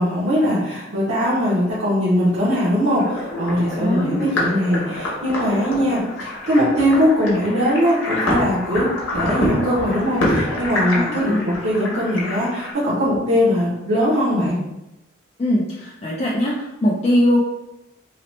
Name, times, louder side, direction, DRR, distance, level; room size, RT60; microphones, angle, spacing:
voice 1, 0.0-8.9 9.1-14.6, equal, 85° right, -10 dB, 0.8 m, -20 dB
sound 1, 2.8-12.7, left 1 dB, 75° left, 0.9 m, -26 dB
voice 2, 3.3-4.3 10.9-11.4 15.4-17.4, left 1 dB, 30° left, -5 dB, 0.3 m, -21 dB
2.9 x 2.0 x 3.0 m, 0.94 s
head